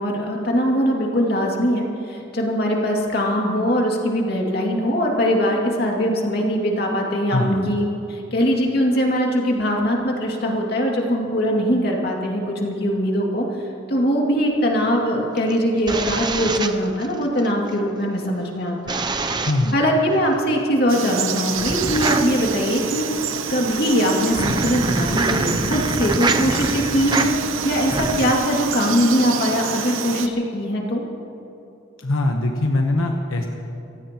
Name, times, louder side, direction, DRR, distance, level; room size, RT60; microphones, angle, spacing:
voice 1, 0.0-19.0 19.7-23.1 23.5-31.0, equal, 50° left, -1 dB, 2.5 m, -21 dB
voice 2, 7.3-7.7 19.5-19.8 32.0-33.5, left 2 dB, 85° left, 2 dB, 1.1 m, -22 dB
sound 1, 15.4-17.5 18.9-19.8 21.5-28.3, right 3 dB, 20° right, 0.6 m, -26 dB
Frog, 20.9-30.3, right 6 dB, 80° right, 0.9 m, -28 dB
27.0 x 16.5 x 3.0 m, 2.8 s
head